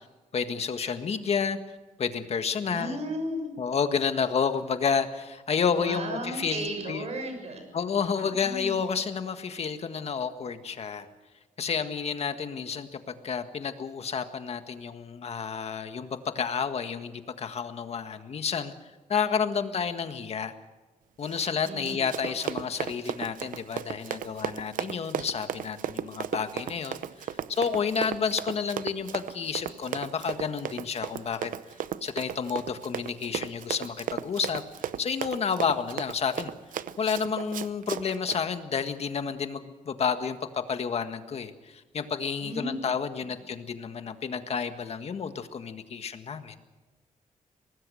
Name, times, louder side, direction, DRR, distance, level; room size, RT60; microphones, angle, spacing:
voice 1, 0.3-1.6 2.0-3.0 3.6-7.0 7.7-11.1 11.6-18.7 19.1-20.5 21.2-31.5 32.0-36.5 37.0-46.5, left 6 dB, 50° left, 8 dB, 1.7 m, -30 dB
voice 2, 2.6-3.5 5.7-7.6 8.0-8.7 21.7-22.5 42.4-42.7, right 1 dB, 55° right, 5 dB, 6.6 m, -35 dB
Run, 21.2-38.4, right 10 dB, 90° right, 0.8 m, -35 dB
24.0 x 19.5 x 6.4 m, 1.2 s
wide cardioid pair, 135°, 13 cm